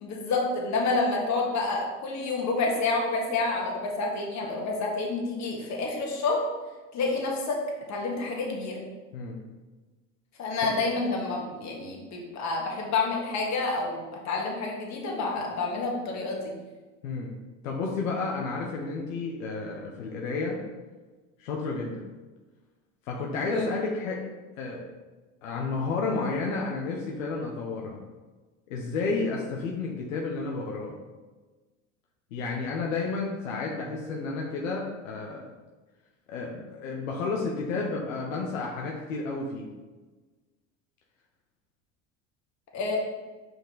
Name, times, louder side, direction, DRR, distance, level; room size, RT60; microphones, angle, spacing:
voice 1, 0.0-6.4 6.9-7.6 7.9-8.8 10.4-16.5 23.5-23.6 42.7-43.0, left 3 dB, 45° left, -1 dB, 1.8 m, -29 dB
voice 2, 17.0-17.3 17.6-20.6 21.4-22.0 23.1-24.2 24.6-24.9 25.4-28.0 28.7-31.0 32.3-35.5 36.3-39.7, left 3 dB, 80° left, -1 dB, 0.9 m, -31 dB
5.2 x 4.6 x 3.9 m, 1.3 s
hypercardioid pair, 80°, 38 cm